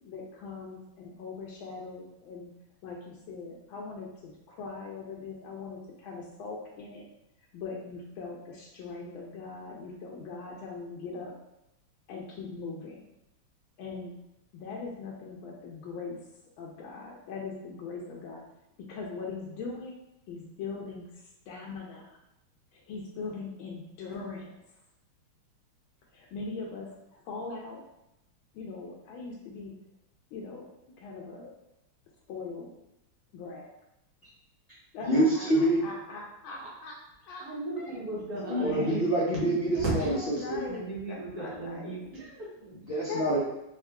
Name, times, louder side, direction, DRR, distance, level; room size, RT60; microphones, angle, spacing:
voice 1, 0.0-2.5 2.8-7.1 7.5-11.3 12.1-13.0 13.8-14.1 14.5-16.2 16.6-18.4 18.8-20.0 20.3-21.1 21.5-22.2 22.7-24.5 26.1-27.8 28.5-29.7 30.3-31.5 32.3-32.7 33.3-33.7 34.9-37.0 37.2-37.4 37.8-37.9 38.3-38.9 39.7-42.0 43.1-43.4, left 4 dB, 80° left, -2 dB, 1.3 m, -40 dB
voice 2, 35.0-35.9 38.4-40.6 42.7-43.4, right 1 dB, 60° left, -9 dB, 0.6 m, -26 dB
voice 3, 37.4-39.0 40.0-40.1 40.7-42.7, right 2 dB, 60° right, -5 dB, 1.1 m, -37 dB
3.5 x 3.4 x 2.2 m, 0.84 s
omnidirectional pair, 2.3 m